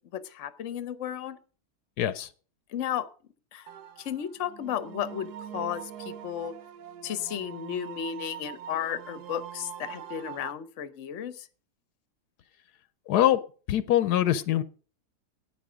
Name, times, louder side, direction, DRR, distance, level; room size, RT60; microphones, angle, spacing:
voice 1, 0.1-1.4 2.7-3.0 3.5-3.7 4.0-6.5 7.0-11.5, left 9 dB, 55° left, 14 dB, 1.0 m, -34 dB
voice 2, 2.0-2.3 13.1-13.4 13.7-14.6, left 12 dB, 80° left, 15 dB, 1.2 m, -23 dB
sound 1, 3.7-10.5, right 10 dB, 75° right, 1.3 m, -43 dB
11.5 x 9.0 x 5.0 m, 0.38 s
omnidirectional pair, 1.7 m